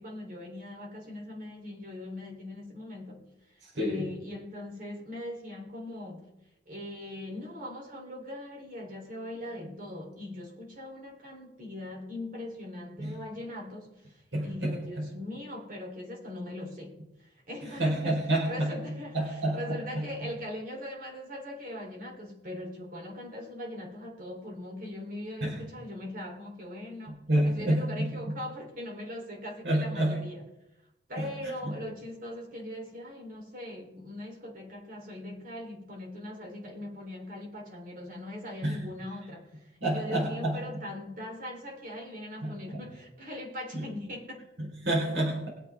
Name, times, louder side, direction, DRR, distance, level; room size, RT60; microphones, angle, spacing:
voice 1, 0.0-3.3 3.7-6.3 6.6-30.5 31.1-44.5, left 1 dB, 50° right, 0 dB, 3.5 m, -41 dB
voice 2, 3.6-4.0 13.0-13.1 14.3-15.1 17.8-18.7 19.1-19.6 25.4-25.5 27.3-28.4 29.6-30.2 31.2-31.3 31.6-31.7 38.6-38.8 39.8-40.6 42.4-42.5 43.7-43.8 44.6-45.5, right 1 dB, 70° right, -2 dB, 4.2 m, -28 dB
22.5 x 8.1 x 3.6 m, 0.92 s
head